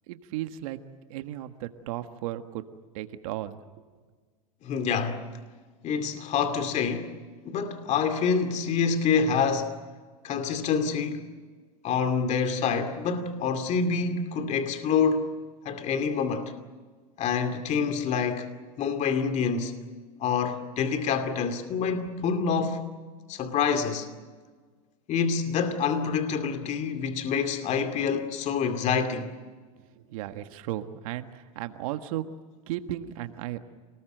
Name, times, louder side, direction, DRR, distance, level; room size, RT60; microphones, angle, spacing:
voice 1, 0.1-0.8 1.1-2.6 2.9-3.6 29.8-32.2 32.7-33.6, right 13 dB, 70° right, 1.5 m, -35 dB
voice 2, 4.6-5.3 5.8-7.1 7.4-9.8 10.2-11.3 11.8-15.3 15.6-16.5 17.2-18.5 18.8-19.7 20.2-22.8 23.3-24.1 25.1-29.3, left 6 dB, 40° left, 2.4 m, -27 dB
27.5 x 20.0 x 7.9 m
supercardioid pair, 115°, 18 cm